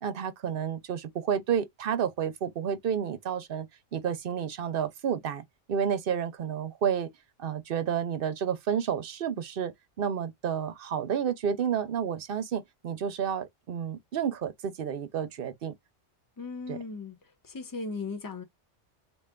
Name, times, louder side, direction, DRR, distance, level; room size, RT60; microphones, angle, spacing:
voice 1, 0.0-3.7 3.9-7.1 7.4-15.7 16.7-16.8, right 8 dB, 60° right, 0.7 m, -30 dB
voice 2, 16.4-17.2 17.4-18.4, left 4 dB, 20° left, 0.8 m, -37 dB
3.3 x 2.5 x 3.6 m
omnidirectional pair, 1.2 m